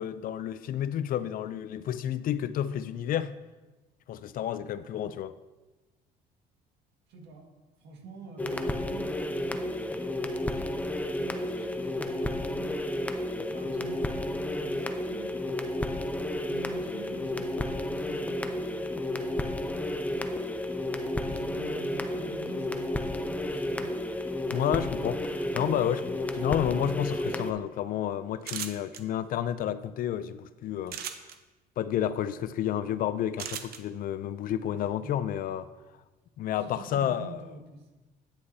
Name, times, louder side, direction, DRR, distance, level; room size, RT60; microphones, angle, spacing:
voice 1, 0.0-3.3 4.1-5.3 24.5-31.0 31.8-35.7 36.4-37.4, left 10 dB, 55° left, 0.4 m, -30 dB
voice 2, 7.1-7.5 7.8-15.6 16.4-20.7 21.3-24.0 34.8-35.4 36.5-38.1, right 3 dB, 85° right, 1.8 m, -47 dB
sound 1, 8.4-27.5, left 1 dB, 10° left, 0.6 m, -32 dB
sound 2, 28.4-29.0 30.9-31.4 33.4-33.8, right 9 dB, 65° right, 0.8 m, -36 dB
9.9 x 8.4 x 2.7 m
cardioid pair, 110°, 17 cm